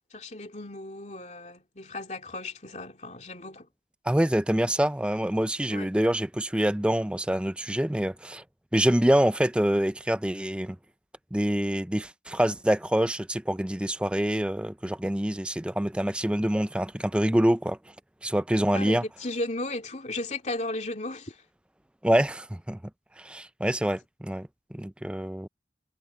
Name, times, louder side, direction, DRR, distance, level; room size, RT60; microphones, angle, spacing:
voice 1, 0.1-3.7 5.7-5.9 18.7-21.4, left 2 dB, 40° left, 2.9 m, -35 dB
voice 2, 4.1-8.4 8.7-10.8 11.3-17.9 18.2-19.0 22.0-22.8 23.2-25.5, right 1 dB, 5° right, 0.4 m, -26 dB
head